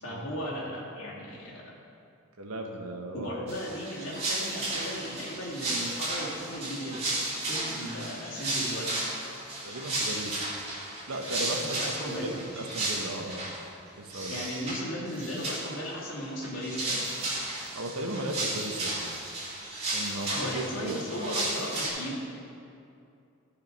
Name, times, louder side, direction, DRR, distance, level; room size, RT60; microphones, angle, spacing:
voice 1, 0.0-1.6 3.1-7.0 7.4-8.9 11.8-12.4 14.3-17.1 20.3-22.2, equal, 65° left, -6 dB, 2.7 m, -36 dB
voice 2, 2.4-3.4 9.6-10.5 11.1-13.4 13.9-14.4 17.7-19.0 19.9-21.0, right 1 dB, 80° right, 3 dB, 1.1 m, -36 dB
Working a Loom, 3.5-13.6 14.1-14.8 15.1-15.9 16.2-21.9, right 2 dB, 30° right, 2.4 m, -34 dB
15.0 x 5.2 x 5.3 m, 2.6 s
head